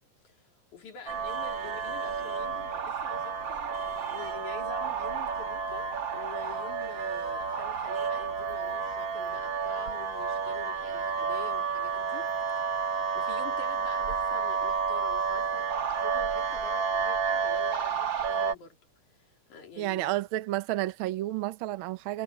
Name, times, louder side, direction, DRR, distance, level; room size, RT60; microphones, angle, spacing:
voice 1, 0.2-18.8 19.1-20.2, left 6 dB, 85° left, 4.6 m, -47 dB
sound 1, 1.1-18.5, right 5 dB, 45° right, 2.2 m, -31 dB
voice 2, 19.8-22.2, right 15 dB, 75° right, 1.2 m, -31 dB
omnidirectional pair, 3.3 m